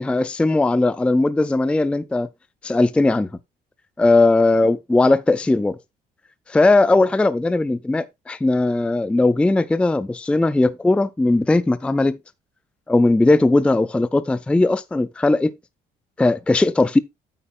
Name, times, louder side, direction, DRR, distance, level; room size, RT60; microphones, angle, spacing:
voice 1, 0.0-2.3 2.6-3.3 4.0-5.8 6.5-12.2 12.9-15.5 16.2-17.0, left 2 dB, 5° left, 0.4 m, -18 dB
8.9 x 8.5 x 2.5 m
cardioid pair, 110°, 17 cm